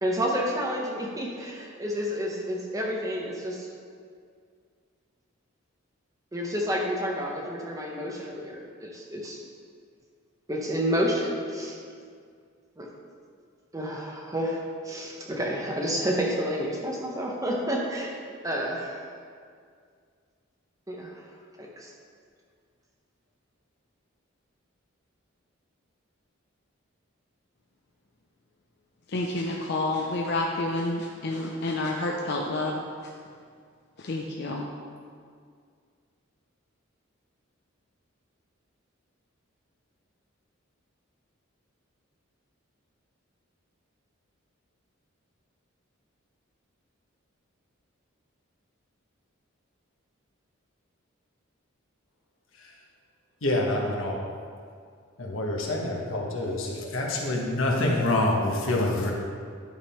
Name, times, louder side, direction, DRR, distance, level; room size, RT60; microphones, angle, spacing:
voice 1, 0.0-3.7 6.3-9.4 10.5-11.8 12.8-12.9 13.7-19.1 20.9-21.2 21.6-21.9, equal, 15° right, -1 dB, 0.8 m, -30 dB
voice 2, 29.1-33.1 34.0-34.7, left 2 dB, 55° left, -1 dB, 0.5 m, -29 dB
voice 3, 53.4-54.3 55.2-59.1, left 1 dB, 75° left, -1 dB, 1.1 m, -26 dB
10.5 x 3.7 x 4.3 m, 2.1 s
head